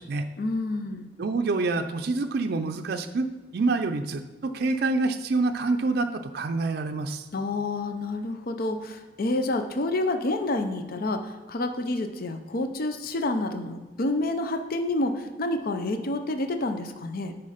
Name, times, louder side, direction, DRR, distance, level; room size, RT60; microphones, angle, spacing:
voice 1, 0.4-1.1 7.3-17.3, left 2 dB, 55° left, 7 dB, 0.6 m, -28 dB
voice 2, 1.2-7.2, right 3 dB, 60° right, 6 dB, 0.4 m, -27 dB
9.6 x 4.3 x 5.0 m, 1.3 s
head